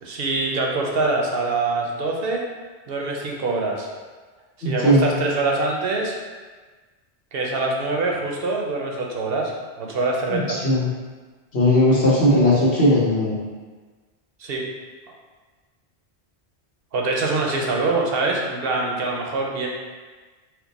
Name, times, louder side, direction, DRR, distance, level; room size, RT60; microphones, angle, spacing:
voice 1, 0.0-2.4 2.9-3.9 4.6-6.1 7.3-9.5 9.8-10.6 14.4-14.6 16.9-19.7, right 3 dB, 65° right, -1 dB, 0.8 m, -24 dB
voice 2, 4.6-5.1 10.3-10.9 11.5-13.3, left 1 dB, 70° left, -7 dB, 1.3 m, -18 dB
4.5 x 2.1 x 4.0 m, 1.4 s
omnidirectional pair, 1.1 m